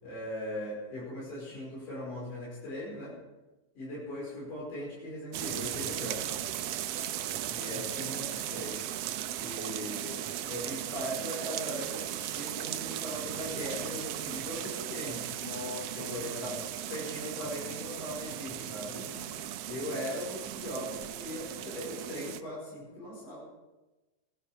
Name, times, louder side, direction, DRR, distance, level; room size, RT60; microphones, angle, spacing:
voice 1, 0.0-3.2 3.7-6.3 7.5-8.8 9.4-15.3 15.9-16.5 16.9-19.1 19.7-23.4, left 1 dB, 80° left, -6 dB, 6.6 m, -39 dB
sound 1, 5.3-22.4, right 11 dB, 80° right, 1.4 m, -37 dB
voice 2, 15.4-16.6 18.8-19.4, left 3 dB, 45° left, 1 dB, 1.9 m, -43 dB
19.5 x 11.5 x 4.9 m, 1.1 s
omnidirectional pair, 3.6 m